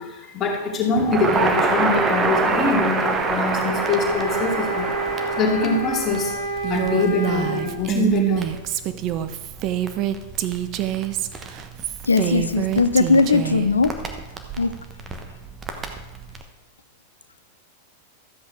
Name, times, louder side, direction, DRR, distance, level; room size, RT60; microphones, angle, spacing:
voice 1, 0.0-5.0 5.4-6.3 6.7-8.5, left 3 dB, 25° left, 0 dB, 2.4 m, -24 dB
Crackle, 1.0-16.4, right 3 dB, 20° right, 1.2 m, -28 dB
sound 1, 3.5-7.7, right 2 dB, 75° right, 3.8 m, -28 dB
Female speech woman speaking, 6.6-13.7, right 12 dB, 40° right, 0.6 m, -26 dB
voice 2, 12.1-13.9 14.6-14.7, left 4 dB, 75° left, 12 dB, 0.6 m, -19 dB
13.0 x 7.9 x 4.8 m, 1.1 s
figure-of-eight pair, 90°, 0 cm